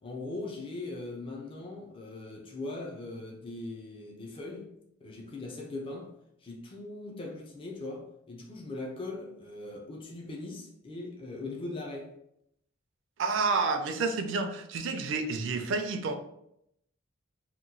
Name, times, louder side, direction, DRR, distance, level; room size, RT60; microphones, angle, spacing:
voice 1, 0.0-4.7 5.0-6.1 6.4-12.1, left 2 dB, 25° left, 0.4 m, -40 dB
voice 2, 13.2-16.1, right 4 dB, 65° right, 0.4 m, -29 dB
2.9 x 2.2 x 3.7 m
head